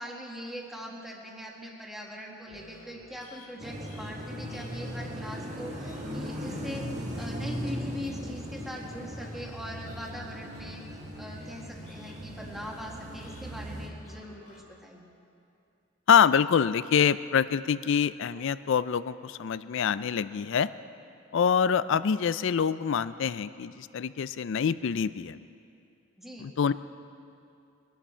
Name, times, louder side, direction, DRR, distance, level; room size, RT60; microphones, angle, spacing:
voice 1, 0.0-6.9 7.1-10.8 11.2-15.1 26.2-26.5, equal, ahead, -2 dB, 1.7 m, -41 dB
sound 1, 2.5-14.6, equal, 40° left, 2.5 m, -54 dB
sound 2, 3.6-13.9, equal, 35° right, 1.7 m, -38 dB
voice 2, 16.1-20.7 21.3-25.4 26.4-26.7, left 7 dB, 65° left, 15 dB, 0.4 m, -25 dB
22.0 x 11.5 x 4.4 m, 2.6 s
head